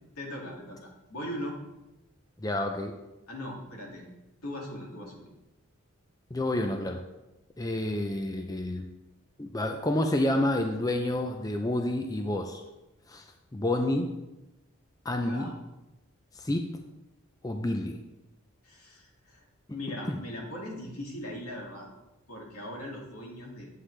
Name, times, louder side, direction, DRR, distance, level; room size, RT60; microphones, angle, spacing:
voice 1, 0.2-1.6 3.3-4.1 4.4-5.2 15.2-15.5 18.6-19.4 19.7-21.9 22.3-23.7, left 1 dB, 80° left, -2 dB, 2.3 m, -39 dB
voice 2, 2.4-2.9 6.3-7.0 7.6-8.8 9.4-12.6 13.1-13.2 13.5-14.1 15.0-15.5 16.4-16.7 17.4-18.0 20.1-20.2, left 1 dB, 15° left, 4 dB, 0.5 m, -29 dB
9.9 x 7.5 x 3.3 m, 1.0 s
head